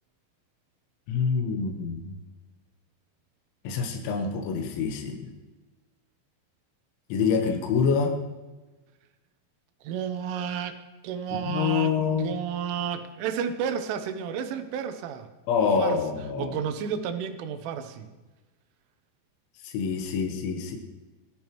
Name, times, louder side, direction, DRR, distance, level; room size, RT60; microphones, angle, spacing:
voice 1, 1.1-2.2 3.7-5.3 7.1-8.2 11.3-12.3 15.5-16.5 19.6-20.8, left 5 dB, 80° left, 3 dB, 3.6 m, -26 dB
voice 2, 9.8-15.3 15.6-16.0 16.4-18.1, right 8 dB, 85° right, 8 dB, 3.5 m, -32 dB
18.0 x 14.0 x 3.1 m, 1.2 s
omnidirectional pair, 5.5 m